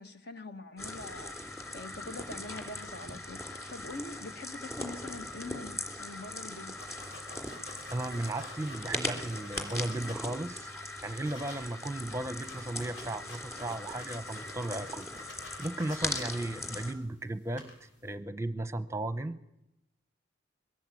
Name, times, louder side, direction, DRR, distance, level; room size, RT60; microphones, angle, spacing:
voice 1, 0.0-1.4 1.7-7.1, left 2 dB, 55° left, 1.5 m, -44 dB
sound 1, 0.8-16.9, left 1 dB, 15° left, 3.1 m, -40 dB
sound 2, 6.8-10.5 10.9-11.6 11.9-12.0 12.2-17.1 17.5-17.9, left 2 dB, 75° left, 7.0 m, -49 dB
voice 2, 7.9-10.7 11.0-15.1 15.6-19.4, right 1 dB, 15° right, 0.8 m, -35 dB
22.5 x 17.5 x 8.5 m
head